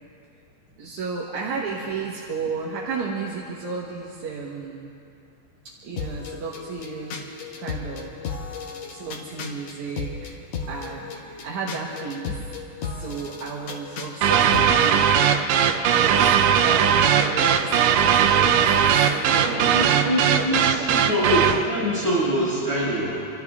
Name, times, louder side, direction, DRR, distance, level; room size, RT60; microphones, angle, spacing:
voice 1, 0.8-4.9 5.6-8.1 8.9-10.4 10.7-15.3 15.6-21.0, right 4 dB, 60° right, -4 dB, 2.2 m, -33 dB
sound 1, 6.0-14.9, left 5 dB, 70° left, 1.6 m, -35 dB
sound 2, 14.2-21.6, right 8 dB, 80° right, 1.9 m, -19 dB
voice 2, 19.3-23.3, equal, 30° left, -12 dB, 5.7 m, -25 dB
27.5 x 13.5 x 3.6 m, 2.6 s
omnidirectional pair, 4.6 m